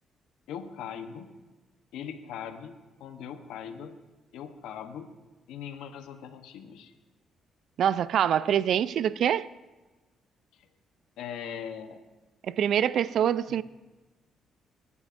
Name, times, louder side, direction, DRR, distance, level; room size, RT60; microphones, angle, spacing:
voice 1, 0.5-1.3 1.9-2.7 3.0-3.9 4.3-5.1 5.5-6.9 11.2-12.0 13.5-13.6, left 8 dB, 90° left, 0.9 m, -40 dB
voice 2, 7.8-9.5 12.4-13.6, right 9 dB, 70° right, 0.3 m, -25 dB
19.0 x 9.7 x 2.5 m
cardioid pair, 90°, 0 cm